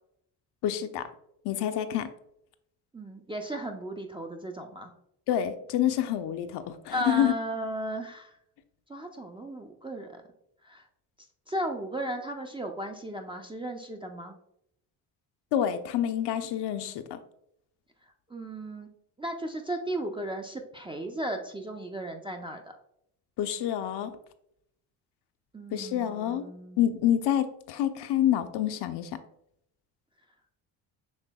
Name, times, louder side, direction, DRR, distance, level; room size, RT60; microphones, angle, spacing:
voice 1, 0.6-1.1 1.4-2.1 5.3-7.3 15.5-17.2 23.4-24.1 25.7-26.5 26.8-29.1, left 10 dB, 55° left, 9 dB, 0.5 m, -27 dB
voice 2, 2.9-4.9 6.9-8.3 8.9-10.2 10.6-10.8 11.5-14.3 18.3-18.9 19.2-22.7 25.5-26.8, right 1 dB, 10° right, 1 dB, 0.3 m, -35 dB
6.4 x 3.3 x 2.2 m, 0.77 s
hypercardioid pair, 60°, 48 cm